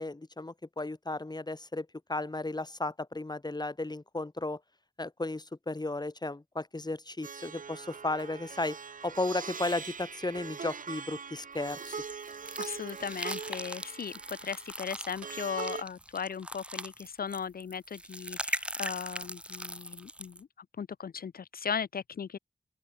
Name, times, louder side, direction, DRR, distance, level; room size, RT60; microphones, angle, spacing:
voice 1, 0.0-4.6 5.0-8.8 9.0-12.0, left 2 dB, 25° left, 1.5 m, -34 dB
Plucked string instrument, 7.2-15.8, right 6 dB, 60° right, 0.6 m, -42 dB
sound 1, 11.7-20.4, right 1 dB, 5° right, 0.5 m, -40 dB
voice 2, 12.6-20.5 20.8-22.4, left 7 dB, 75° left, 0.5 m, -37 dB
open air
cardioid pair, 50°, 15 cm